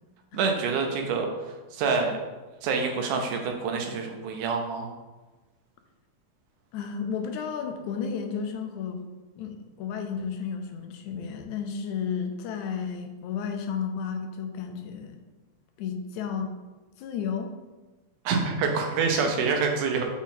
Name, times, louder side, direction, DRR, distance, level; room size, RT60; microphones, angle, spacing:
voice 1, 0.3-1.3 1.7-2.2 2.6-4.9 18.3-20.0, right 5 dB, 90° right, 3 dB, 2.3 m, -26 dB
voice 2, 6.7-9.1 9.4-15.2 15.8-16.5 17.0-17.5 19.4-19.5, left 6 dB, 80° left, 5 dB, 2.0 m, -32 dB
5.9 x 4.1 x 4.1 m, 1.2 s
omnidirectional pair, 3.4 m